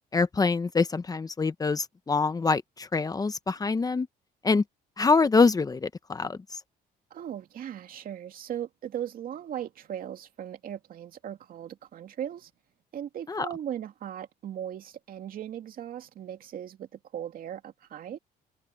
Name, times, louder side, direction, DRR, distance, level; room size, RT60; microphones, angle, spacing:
voice 1, 0.1-4.1 4.4-4.6 5.0-6.4 13.3-13.5, left 4 dB, 20° left, 1.0 m, -25 dB
voice 2, 7.1-12.5 12.9-18.2, right 10 dB, 55° right, 2.4 m, -38 dB
cardioid pair, 110°, 17 cm